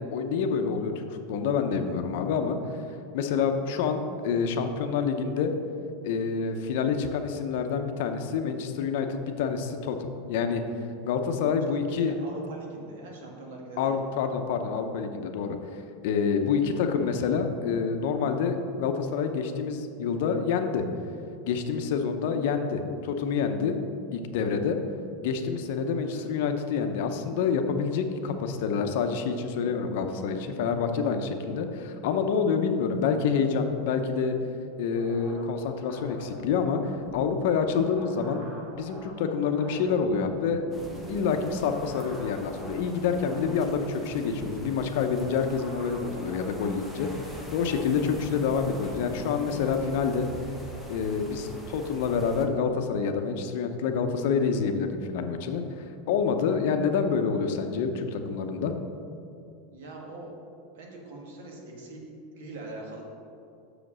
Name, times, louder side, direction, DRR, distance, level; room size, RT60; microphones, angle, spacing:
voice 1, 0.0-2.6 3.1-5.5 6.0-10.6 11.0-12.1 13.8-15.6 16.0-20.8 21.4-23.8 24.1-24.8 25.2-34.4 34.8-38.4 38.8-40.6 41.1-47.1 47.5-50.3 50.9-55.6 56.1-58.7, left 6 dB, 60° left, 6 dB, 0.7 m, -27 dB
voice 2, 11.9-14.0 25.9-26.3 59.7-60.4 60.7-62.0 62.3-63.0, right 2 dB, 75° right, 0 dB, 1.7 m, -42 dB
sound 1, 34.9-49.7, right 1 dB, 25° right, 1.4 m, -44 dB
sound 2, 40.7-52.5, equal, 5° right, 0.8 m, -44 dB
6.5 x 5.0 x 6.2 m, 2.5 s
supercardioid pair, 165°, 0 cm